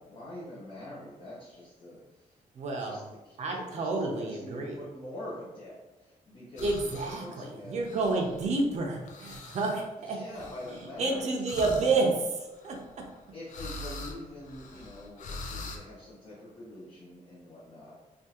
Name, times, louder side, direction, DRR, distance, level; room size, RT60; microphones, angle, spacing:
voice 1, 0.0-2.4 2.8-6.8 7.1-7.8 10.0-11.4 11.8-12.0 13.3-18.0, left 1 dB, 40° left, -9 dB, 0.8 m, -45 dB
voice 2, 2.5-3.0 3.4-4.8 6.6-10.2 11.0-12.1 12.6-12.8, right 3 dB, 55° right, 0 dB, 0.6 m, -29 dB
sound 1, 6.6-7.3 7.8-8.6 9.1-9.8 10.3-11.0 11.5-12.0 12.5-13.2 13.5-15.8, left 2 dB, 60° left, 0.4 m, -43 dB
3.5 x 2.4 x 2.8 m, 1.1 s
wide cardioid pair, 145°, 14 cm